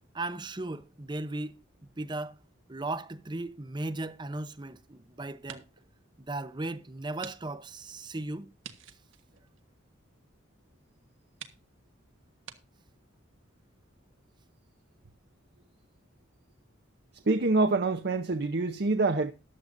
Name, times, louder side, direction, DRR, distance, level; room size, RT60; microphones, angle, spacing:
voice 1, 0.1-1.6 2.0-2.4 2.7-5.7 6.3-8.5, right 2 dB, 25° right, 0.7 m, -36 dB
sound 1, 4.0-4.9 5.3-5.9 6.3-6.4 7.2-7.4 7.6-7.7 8.6-10.2 10.8-10.9 11.4-11.6 12.4-12.6, right 8 dB, 90° right, 1.4 m, -48 dB
voice 2, 17.3-19.3, right 3 dB, 55° right, 0.7 m, -26 dB
14.0 x 11.0 x 2.6 m
head